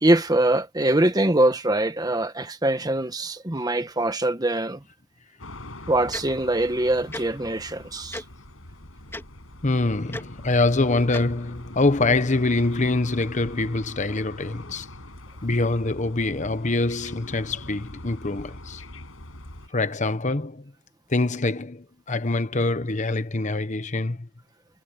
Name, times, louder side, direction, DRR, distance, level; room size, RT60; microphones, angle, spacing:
voice 1, 0.0-4.8 5.9-8.2, right 1 dB, 20° right, 1.3 m, -23 dB
sound 1, 5.4-19.7, left 1 dB, 85° left, 5.8 m, -43 dB
Tick-tock, 6.1-6.2 7.1-7.2 8.1-8.2 9.1-9.2 10.1-10.2 11.1-11.2, left 1 dB, 10° left, 3.4 m, -34 dB
voice 2, 9.6-14.9 15.4-18.8 19.7-20.6 21.1-24.3, left 2 dB, 35° left, 1.0 m, -24 dB
head